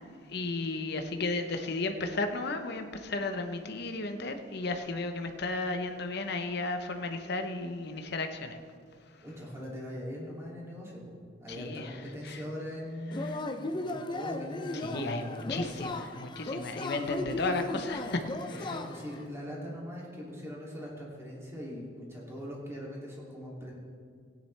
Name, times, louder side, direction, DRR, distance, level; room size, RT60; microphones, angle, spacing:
voice 1, 0.3-8.6 11.5-12.4 13.2-13.4 14.7-18.7, left 3 dB, 60° left, 6 dB, 0.9 m, -34 dB
voice 2, 9.2-15.9 17.5-17.6 18.5-23.8, equal, 15° right, -4 dB, 2.7 m, -41 dB
Yell / Cheering, 13.1-19.2, left 2 dB, 25° left, 0.5 m, -36 dB
16.5 x 10.0 x 3.3 m, 2.1 s
head